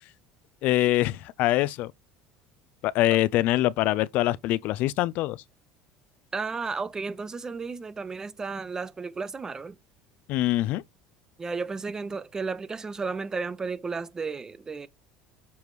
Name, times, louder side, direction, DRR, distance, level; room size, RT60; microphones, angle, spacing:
voice 1, 0.6-1.9 2.8-5.4 10.3-10.8, left 16 dB, 60° left, 0.4 m, -24 dB
voice 2, 6.3-9.8 11.4-14.9, right 4 dB, 20° right, 0.8 m, -33 dB
6.9 x 3.0 x 4.8 m
supercardioid pair, 120°, 3 cm